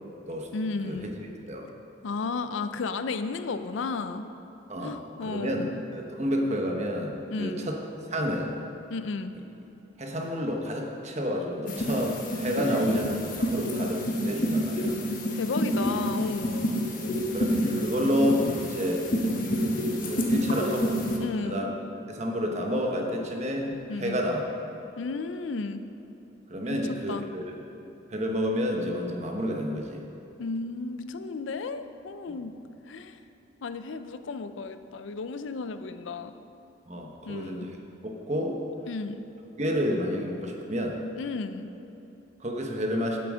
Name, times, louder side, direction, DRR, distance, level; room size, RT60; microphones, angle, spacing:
voice 1, 0.5-1.1 2.0-4.2 4.8-5.7 7.3-7.7 8.9-9.3 12.6-12.8 15.3-16.7 21.2-21.7 23.9-24.2 25.0-25.8 26.7-26.8 27.1-27.3 30.4-32.5 32.9-33.2 33.6-36.3 37.3-37.7 38.9-39.2 41.2-41.7, left 4 dB, 80° left, 10 dB, 0.5 m, -33 dB
voice 2, 5.2-7.8 8.1-8.5 10.0-14.9 17.3-19.1 20.0-21.0 21.4-21.7 22.1-24.5 26.5-27.6 28.1-30.0 36.9-37.8 38.0-38.6 39.6-41.0 42.4-43.2, equal, 35° right, 1 dB, 1.1 m, -29 dB
sound 1, 11.7-21.2, equal, 45° left, 1.1 m, -28 dB
8.4 x 7.9 x 6.2 m, 2.9 s
head